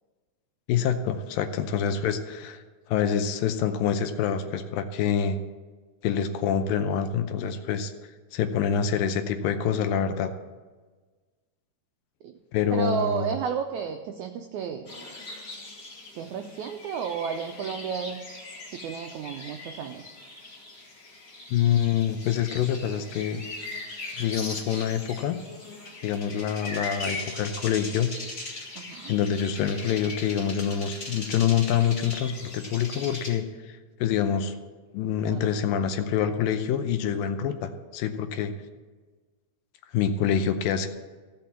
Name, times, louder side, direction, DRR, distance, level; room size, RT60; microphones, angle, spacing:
voice 1, 0.7-2.6 2.9-5.4 6.0-7.9 8.3-10.3 12.5-13.3 21.5-23.4 24.2-25.4 26.0-28.1 29.1-33.5 34.0-34.5 34.9-38.5 39.9-40.9, left 8 dB, 80° left, 8 dB, 2.4 m, -26 dB
voice 2, 12.7-14.9 16.1-18.2 18.7-20.1 28.7-29.2 35.2-35.4, right 7 dB, 85° right, 5 dB, 1.6 m, -32 dB
sound 1, 14.9-33.3, left 2 dB, 30° left, 1.8 m, -40 dB
sound 2, 27.0-29.1, right 2 dB, 45° right, 2.1 m, -46 dB
15.5 x 5.9 x 7.0 m, 1.4 s
omnidirectional pair, 4.2 m